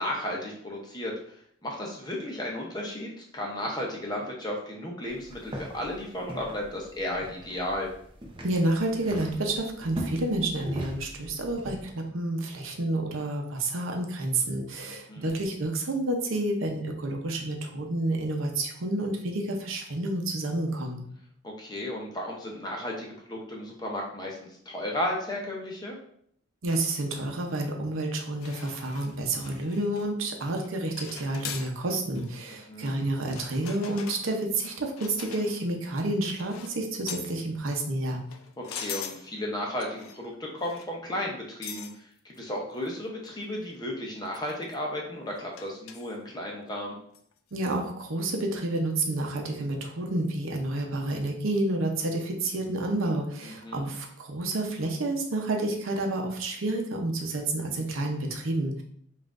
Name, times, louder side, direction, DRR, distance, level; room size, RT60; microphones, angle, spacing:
voice 1, 0.0-7.9 15.1-15.3 21.4-26.0 32.7-33.0 38.6-47.0 53.4-53.9, left 1 dB, 20° left, -1 dB, 0.6 m, -34 dB
sound 1, 5.1-11.8, equal, 25° right, 0.6 m, -41 dB
voice 2, 8.4-21.0 26.6-38.2 47.5-58.8, right 2 dB, 75° right, 2 dB, 0.7 m, -29 dB
sound 2, 28.4-30.1 30.4-30.7 31.0-31.7 32.1-32.3 33.3-35.7 36.4-36.8 37.1-37.4 38.2-39.2 39.8-40.3 40.6-40.9 41.6-41.9 42.4-42.5 42.9-43.0 43.3-43.4 44.3-44.7 45.6-46.2 47.1-47.3, left 7 dB, 85° left, 0.4 m, -42 dB
5.5 x 2.5 x 2.5 m, 0.65 s
head